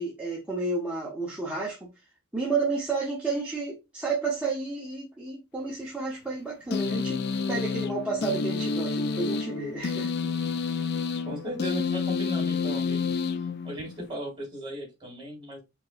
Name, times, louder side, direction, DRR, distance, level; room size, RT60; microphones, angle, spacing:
voice 1, 0.0-1.9 2.3-10.1, right 3 dB, 5° right, 0.8 m, -31 dB
sound 1, 6.7-14.1, left 5 dB, 50° left, 0.4 m, -29 dB
voice 2, 11.3-13.1 13.6-15.6, equal, 25° right, 2.2 m, -36 dB
4.6 x 2.9 x 2.4 m
head